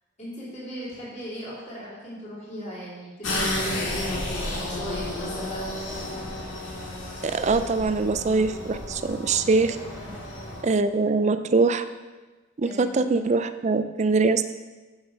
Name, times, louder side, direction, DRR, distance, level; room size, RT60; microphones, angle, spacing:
voice 1, 0.2-5.8 10.0-10.3 12.6-13.0, equal, 35° left, -11 dB, 3.1 m, -38 dB
sound 1, 3.2-10.6, left 1 dB, 90° left, 1.9 m, -32 dB
voice 2, 7.2-9.8 10.6-11.8 12.6-14.5, right 3 dB, 35° right, 11 dB, 0.4 m, -23 dB
7.4 x 6.3 x 5.3 m, 1.3 s
head